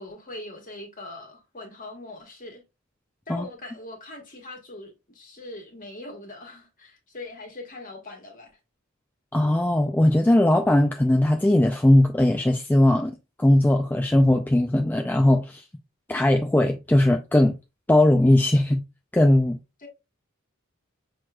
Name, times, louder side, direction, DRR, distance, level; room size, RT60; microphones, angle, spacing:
voice 1, 0.0-2.6 3.3-8.5 19.8-19.9, left 2 dB, 40° left, 1.5 m, -41 dB
voice 2, 9.3-13.1 13.4-15.6 16.1-17.5 17.9-18.8 19.1-19.6, left 1 dB, 10° left, 0.4 m, -19 dB
6.1 x 3.1 x 2.3 m
head